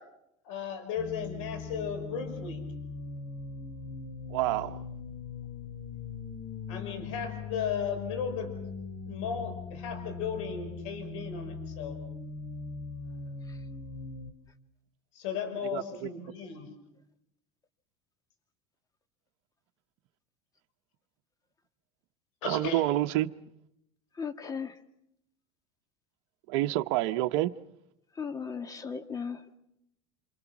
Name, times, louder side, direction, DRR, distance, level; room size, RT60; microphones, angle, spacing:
voice 1, 0.5-2.6 6.7-8.5 9.0-12.0 15.1-16.7 22.4-23.0, left 7 dB, 80° left, 5.6 m, -35 dB
sound 1, 1.0-14.3, left 4 dB, 50° left, 2.9 m, -40 dB
voice 2, 4.3-4.8 15.6-16.1 22.4-23.3 26.5-27.5, right 16 dB, 65° right, 0.9 m, -28 dB
voice 3, 24.2-24.7 28.2-29.4, left 6 dB, 20° left, 1.8 m, -36 dB
27.0 x 27.0 x 6.1 m
supercardioid pair, 115°, 16 cm